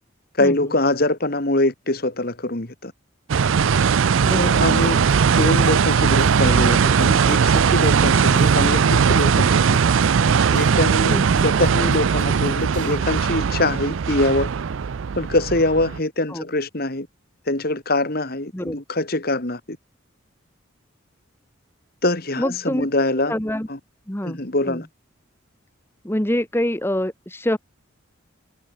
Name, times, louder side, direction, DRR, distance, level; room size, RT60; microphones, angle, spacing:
voice 1, 0.3-2.9 4.4-9.8 10.2-14.5 15.2-17.1 17.5-19.8 22.0-23.3 23.7-23.8 24.2-24.9, left 2 dB, 50° left, 2.5 m, -23 dB
sound 1, 3.3-16.0, right 6 dB, 75° right, 0.5 m, -19 dB
voice 2, 4.2-4.6 11.1-11.4 16.3-16.4 18.5-18.8 22.4-22.9 23.3-23.7 24.1-24.4 24.7-24.8 26.0-27.6, left 1 dB, 10° left, 1.4 m, -25 dB
sound 2, 4.3-13.0, right 1 dB, 40° right, 5.5 m, -44 dB
head